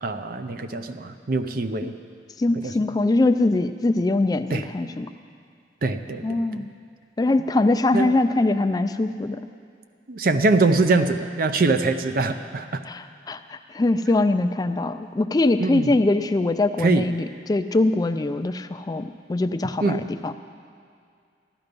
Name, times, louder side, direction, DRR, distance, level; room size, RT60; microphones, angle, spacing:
voice 1, 0.0-1.9 2.6-2.7 4.5-4.6 5.8-6.7 7.9-8.1 10.1-12.8 15.6-15.9 16.8-17.1 19.8-20.0, right 3 dB, 55° right, 9 dB, 0.6 m, -23 dB
voice 2, 2.4-5.1 6.2-6.7 7.2-9.4 12.9-20.3, left 2 dB, 20° left, 9 dB, 0.3 m, -22 dB
14.0 x 11.5 x 5.2 m, 2.3 s
head